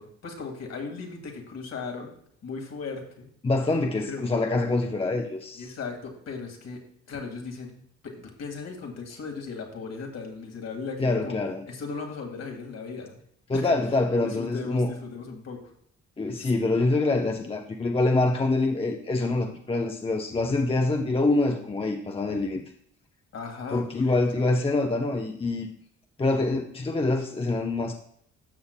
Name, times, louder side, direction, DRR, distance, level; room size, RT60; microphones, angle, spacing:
voice 1, 0.0-2.1 2.4-3.3 4.0-4.2 5.5-6.8 7.1-11.4 11.7-13.2 13.5-13.8 14.2-15.6 16.3-16.5 23.3-24.1, left 4 dB, 55° left, 2 dB, 2.0 m, -37 dB
voice 2, 3.4-5.6 11.0-11.6 13.5-14.9 16.2-22.6 23.7-25.7 26.2-27.9, left 2 dB, 20° left, 2 dB, 0.7 m, -25 dB
13.0 x 6.4 x 2.2 m, 0.66 s
cardioid pair, 90°, 30 cm